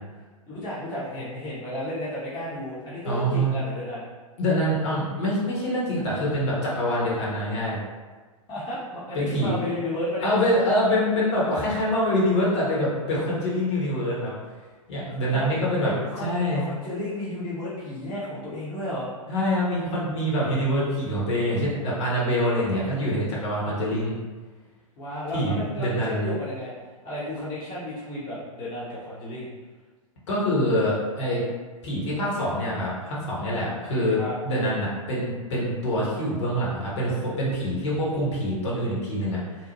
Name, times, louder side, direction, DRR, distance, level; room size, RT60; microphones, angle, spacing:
voice 1, 0.5-4.0 8.5-10.3 15.1-15.5 15.8-16.3 16.5-19.1 25.0-26.7 27.0-29.5 34.2-34.3, left 1 dB, 25° left, -9 dB, 0.7 m, -33 dB
voice 2, 3.0-3.5 4.4-7.8 9.1-9.5 10.2-14.3 14.9-15.9 16.2-16.6 19.3-24.2 25.3-26.3 30.3-31.4 31.8-34.2 34.4-39.6, equal, 50° left, -6 dB, 1.0 m, -25 dB
2.8 x 2.1 x 2.8 m, 1.4 s
figure-of-eight pair, 105°, 19 cm